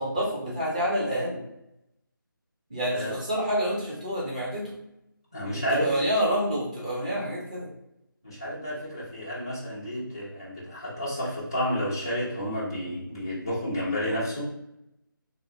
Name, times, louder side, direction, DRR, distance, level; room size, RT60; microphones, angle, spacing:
voice 1, 0.0-1.4 2.7-4.7 5.5-7.7, equal, 20° right, -6 dB, 0.7 m, -28 dB
voice 2, 5.3-6.0 8.2-14.5, equal, 10° left, -8 dB, 0.3 m, -30 dB
2.8 x 2.8 x 2.6 m, 0.84 s
figure-of-eight pair, 175°, 12 cm